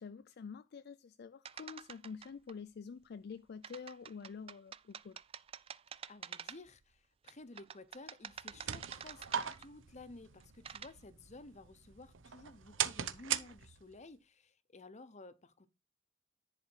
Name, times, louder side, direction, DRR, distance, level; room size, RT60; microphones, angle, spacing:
voice 1, 0.0-5.2, left 5 dB, 55° left, 0.4 m, -48 dB
sound 1, 1.4-2.5 3.6-6.8 7.3-9.8 10.4-10.9, right 8 dB, 30° right, 0.3 m, -48 dB
voice 2, 6.1-15.7, left 2 dB, 35° left, 0.9 m, -54 dB
sound 2, 8.3-14.0, right 9 dB, 85° right, 0.8 m, -40 dB
10.5 x 5.0 x 4.5 m
head